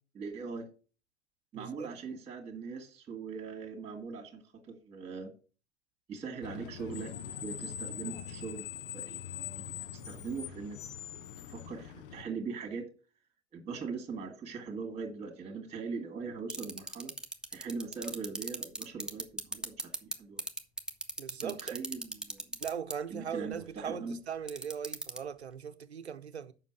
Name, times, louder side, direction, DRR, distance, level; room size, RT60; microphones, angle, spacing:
voice 1, 0.1-0.7 1.5-4.4 4.7-5.3 6.1-7.1 7.4-8.6 8.9-10.8 11.5-12.8 13.5-17.1 17.5-20.4 21.4-22.6 23.1-24.2, right 5 dB, 20° right, 2.1 m, -41 dB
voice 2, 1.5-1.9 21.2-21.7 22.6-26.5, right 7 dB, 80° right, 0.8 m, -39 dB
Screech, 6.4-12.2, left 9 dB, 55° left, 0.9 m, -42 dB
sound 1, 16.5-20.1 20.4-22.9 24.5-25.2, right 2 dB, ahead, 0.9 m, -34 dB
7.3 x 5.8 x 6.0 m
figure-of-eight pair, 85°, 32 cm